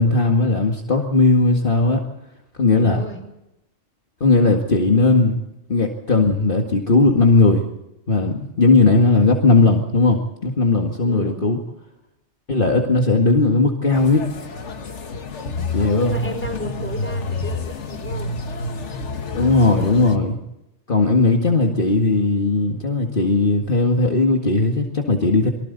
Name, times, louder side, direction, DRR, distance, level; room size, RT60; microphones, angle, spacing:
voice 1, 0.0-2.0 2.6-3.0 4.2-5.4 5.7-7.6 8.1-11.6 12.5-14.2 15.7-16.1 19.3-20.4 20.9-25.5, left 3 dB, 45° left, 1 dB, 2.1 m, -17 dB
voice 2, 2.8-3.2 4.9-5.3 11.0-11.5 15.8-18.4, equal, 10° left, 4 dB, 4.9 m, -33 dB
sound 1, 13.9-20.2, left 3 dB, 75° left, 1.8 m, -29 dB
28.5 x 23.5 x 4.1 m, 0.90 s
omnidirectional pair, 1.2 m